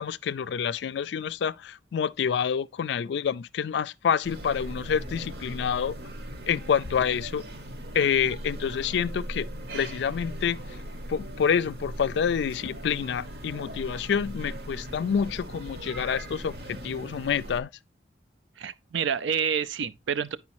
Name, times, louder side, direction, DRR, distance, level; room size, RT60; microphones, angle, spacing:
voice 1, 0.0-6.0 6.5-7.4 7.9-9.5 9.7-10.6 11.1-17.7, left 7 dB, 65° left, 0.3 m, -27 dB
sound 1, 4.2-17.6, equal, 55° right, 0.9 m, -39 dB
voice 2, 18.6-20.4, right 7 dB, 80° right, 0.5 m, -28 dB
9.5 x 4.8 x 2.9 m
head